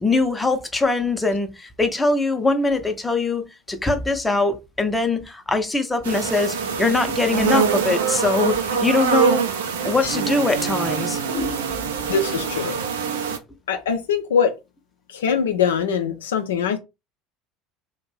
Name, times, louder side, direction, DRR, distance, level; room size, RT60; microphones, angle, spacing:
voice 1, 0.0-9.5 9.8-11.6, left 3 dB, 10° left, 0.6 m, -22 dB
sound 1, 6.0-13.4, right 6 dB, 70° right, 0.5 m, -24 dB
voice 2, 12.1-12.8 13.7-14.5 15.1-16.8, left 6 dB, 75° left, 0.4 m, -22 dB
2.5 x 2.1 x 3.1 m
figure-of-eight pair, 70°, 0 cm